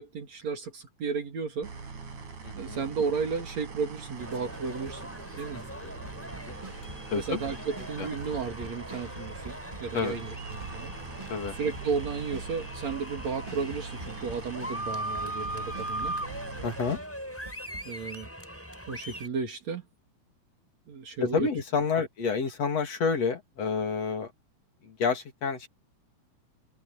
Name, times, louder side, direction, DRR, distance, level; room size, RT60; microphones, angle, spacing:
voice 1, 0.0-1.7 2.6-5.1 5.4-5.6 7.2-10.9 11.5-16.2 17.9-18.3 18.9-19.8 20.9-21.5 21.9-22.0, right 5 dB, 65° right, 3.8 m, -33 dB
sound 1, 1.6-17.0, right 4 dB, 80° right, 6.2 m, -43 dB
voice 2, 2.4-2.8 5.5-5.9 6.5-6.6 7.1-7.4 8.0-8.1 9.9-10.2 11.3-11.5 16.6-17.0 21.2-24.3 24.8-25.7, left 5 dB, 60° left, 3.8 m, -29 dB
sound 2, 4.2-19.3, right 1 dB, 5° left, 7.7 m, -40 dB
sound 3, 6.0-14.9 15.2-17.9, right 2 dB, 10° right, 2.2 m, -47 dB
open air
omnidirectional pair, 3.4 m